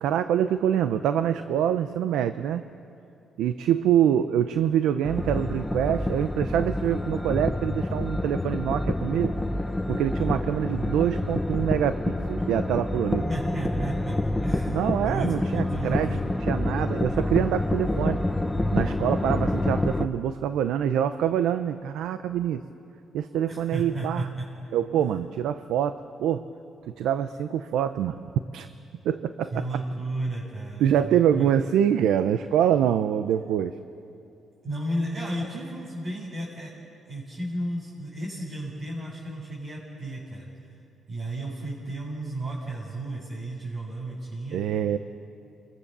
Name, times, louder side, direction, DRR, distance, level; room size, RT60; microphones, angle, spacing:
voice 1, 0.0-2.6 3.4-9.3 9.9-13.3 14.7-18.2 18.7-22.6 23.1-24.3 24.7-26.4 27.0-28.2 28.5-28.7 29.0-29.8 30.8-33.7 44.5-45.0, right 9 dB, 85° right, 10 dB, 0.7 m, -25 dB
sound 1, 5.0-20.1, left 1 dB, 10° left, 1.1 m, -27 dB
voice 2, 13.3-16.2 23.5-24.5 25.0-25.1 29.5-31.5 34.6-36.7 37.1-40.5 41.1-44.6, right 1 dB, 50° right, -6 dB, 7.7 m, -33 dB
29.5 x 23.5 x 6.9 m, 2.6 s
cardioid pair, 90°, 0 cm